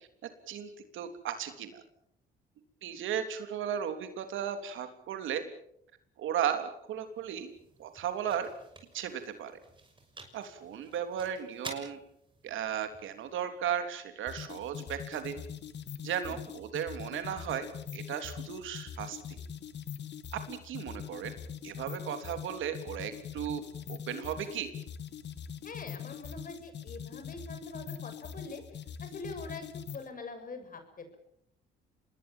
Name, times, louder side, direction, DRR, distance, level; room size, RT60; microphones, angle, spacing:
voice 1, 0.5-1.8 2.8-5.4 6.2-7.5 7.8-8.5 8.9-9.5 10.3-12.0 12.4-15.4 16.0-19.4 20.3-21.3 21.6-23.6 23.9-24.7, right 9 dB, 80° right, 8 dB, 3.3 m, -35 dB
sound 1, 6.8-14.8, right 3 dB, 25° right, 6.3 m, -51 dB
sound 2, 14.3-30.1, left 8 dB, 60° left, 2.0 m, -43 dB
voice 2, 25.6-31.2, left 3 dB, 45° left, 7 dB, 7.1 m, -44 dB
27.0 x 20.5 x 7.5 m, 0.73 s
cardioid pair, 90°, 20 cm